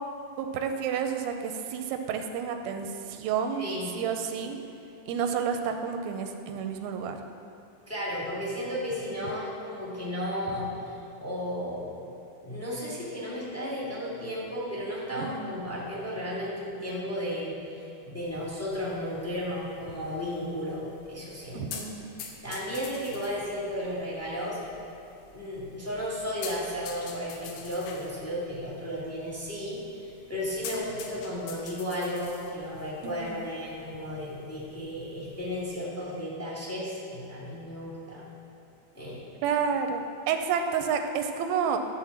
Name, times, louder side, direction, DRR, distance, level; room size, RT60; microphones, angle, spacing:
voice 1, 0.4-3.7 3.9-4.6 5.1-7.2 15.2-15.6 21.5-22.2 33.0-33.4 39.4-41.8, right 7 dB, 85° right, 5 dB, 2.4 m, -30 dB
voice 2, 3.6-3.9 7.9-11.9 12.4-21.7 22.4-24.6 25.3-38.2 38.9-39.3, equal, 15° left, -7 dB, 0.6 m, -34 dB
sound 1, 18.2-35.7, left 6 dB, 70° left, 2.1 m, -47 dB
12.5 x 4.4 x 7.2 m, 2.9 s
omnidirectional pair, 4.4 m